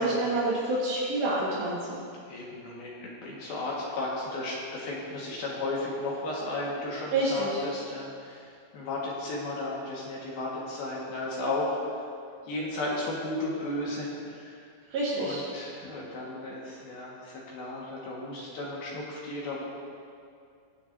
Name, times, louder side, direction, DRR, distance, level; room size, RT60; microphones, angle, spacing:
voice 1, 0.0-2.0 7.1-7.6 14.9-15.4, right 2 dB, 65° right, -6 dB, 3.4 m, -28 dB
voice 2, 2.3-12.1 12.4-14.7 15.1-19.6, left 2 dB, 60° left, -4 dB, 2.9 m, -34 dB
22.0 x 8.4 x 2.7 m, 2.4 s
omnidirectional pair, 5.8 m